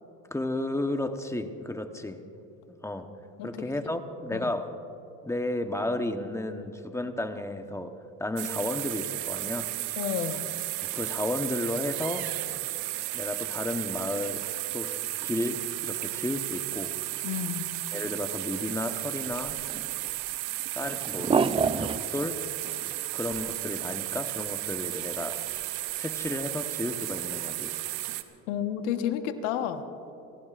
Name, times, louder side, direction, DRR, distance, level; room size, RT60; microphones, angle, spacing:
voice 1, 0.3-2.2 2.8-3.1 3.4-4.8 5.2-9.7 10.8-12.3 13.1-14.5 14.7-14.9 15.2-16.9 17.9-19.6 20.7-21.4 21.8-22.4 23.1-25.4 26.0-27.7, left 1 dB, 10° left, 7 dB, 1.1 m, -33 dB
voice 2, 3.4-3.7 4.3-4.5 10.0-10.5 17.2-17.7 28.5-29.8, left 10 dB, 80° left, 8 dB, 1.3 m, -31 dB
sound 1, 8.4-28.2, right 18 dB, 75° right, 1.0 m, -34 dB
sound 2, 19.3-20.3 20.6-22.3 22.6-23.5 23.8-23.9 24.2-24.3 25.6-25.7 25.9-26.0 26.3-26.4, right 5 dB, 15° right, 0.4 m, -29 dB
29.0 x 17.5 x 2.5 m, 2.9 s
supercardioid pair, 90°, 36 cm